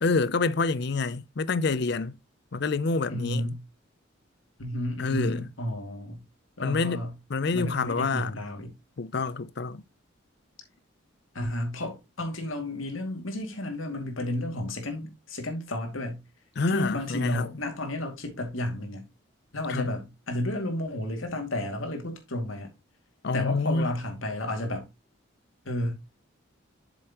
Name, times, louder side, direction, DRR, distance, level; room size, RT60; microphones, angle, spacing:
voice 1, 0.0-2.2 2.5-3.5 5.0-5.5 6.6-8.3 9.0-9.8 16.6-17.5 19.7-19.9 23.2-23.9, left 4 dB, 55° left, 0.5 m, -27 dB
voice 2, 3.1-3.6 4.6-6.2 6.6-7.1 7.5-8.7 11.3-16.2 16.7-19.1 19.5-22.7 23.3-24.9 25.6-25.9, left 1 dB, 85° left, 2.4 m, -32 dB
7.9 x 7.0 x 3.0 m
head